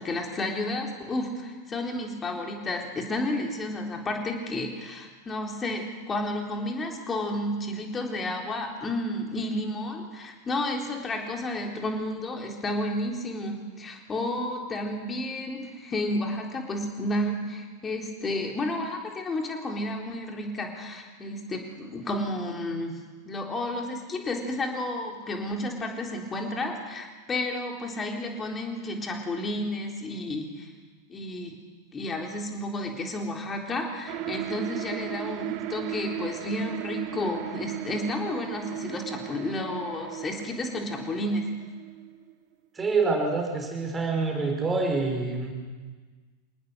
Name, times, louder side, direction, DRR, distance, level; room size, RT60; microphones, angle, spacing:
voice 1, 0.0-23.0 23.3-30.7 31.1-31.6 31.9-41.4, left 1 dB, 20° left, 1 dB, 3.8 m, -31 dB
sound 1, 34.1-42.3, right 16 dB, 45° right, 0.9 m, -37 dB
voice 2, 42.7-45.5, right 3 dB, 15° right, 2 dB, 5.3 m, -26 dB
26.5 x 19.0 x 6.4 m, 1.4 s
figure-of-eight pair, 90°, 0 cm